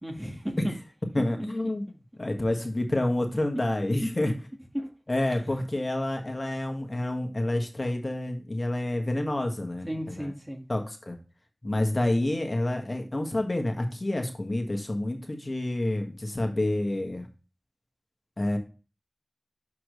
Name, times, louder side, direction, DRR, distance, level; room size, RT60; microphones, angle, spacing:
voice 1, 0.0-0.7 4.7-4.9 9.8-10.6, equal, 15° right, 2 dB, 1.6 m, -34 dB
voice 2, 1.1-1.9 2.2-4.3 5.1-10.3 10.7-11.2 11.6-17.3 18.4-18.6, left 1 dB, 45° left, 3 dB, 1.6 m, -28 dB
6.7 x 5.8 x 3.1 m, 0.32 s
wide cardioid pair, 45°, 0 cm